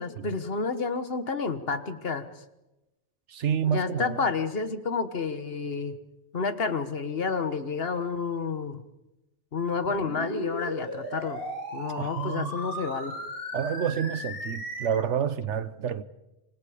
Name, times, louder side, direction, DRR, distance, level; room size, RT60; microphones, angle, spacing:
voice 1, 0.0-2.3 3.7-6.0 6.3-8.8 9.5-11.4 11.7-13.1, left 4 dB, 55° left, 1.6 m, -30 dB
voice 2, 3.3-4.3 12.0-12.6 13.5-16.0, right 8 dB, 80° right, 1.3 m, -29 dB
sound 1, 9.8-14.9, equal, 30° left, 7.5 m, -36 dB
27.0 x 25.0 x 5.1 m
omnidirectional pair, 1.2 m